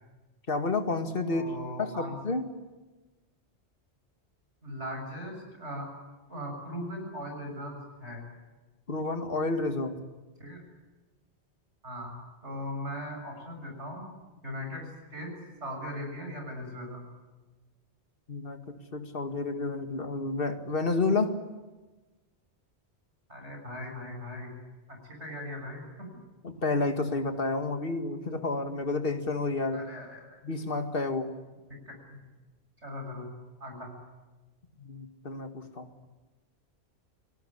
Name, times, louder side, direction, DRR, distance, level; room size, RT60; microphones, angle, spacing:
voice 1, 0.5-1.4 1.8-2.5 8.9-10.0 18.3-21.4 26.4-29.8 30.4-31.3 34.8-35.9, left 3 dB, 55° left, 6 dB, 2.2 m, -30 dB
voice 2, 1.3-2.2 4.6-5.9 6.3-8.2 10.4-10.6 11.8-12.1 12.4-14.0 14.4-15.3 15.6-17.0 23.3-24.5 24.9-26.2 29.7-30.4 31.7-32.3 32.8-33.3 33.6-33.9, left 1 dB, 80° right, 3 dB, 7.3 m, -39 dB
29.0 x 18.5 x 9.9 m, 1.2 s
omnidirectional pair, 1.1 m